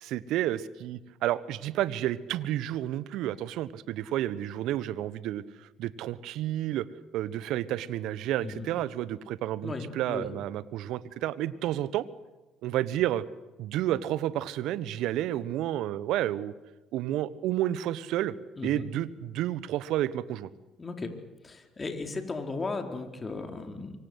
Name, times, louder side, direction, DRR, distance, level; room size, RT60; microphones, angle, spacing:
voice 1, 0.0-6.9 7.1-12.0 12.6-13.2 13.6-16.5 16.9-18.3 18.6-20.5, right 13 dB, 65° right, 17 dB, 1.2 m, -30 dB
voice 2, 8.4-8.7 9.6-10.3 18.6-18.9 20.8-21.1 21.4-23.9, left 3 dB, 30° left, 5 dB, 4.6 m, -36 dB
25.5 x 24.0 x 8.2 m, 1.1 s
hypercardioid pair, 55°, 0 cm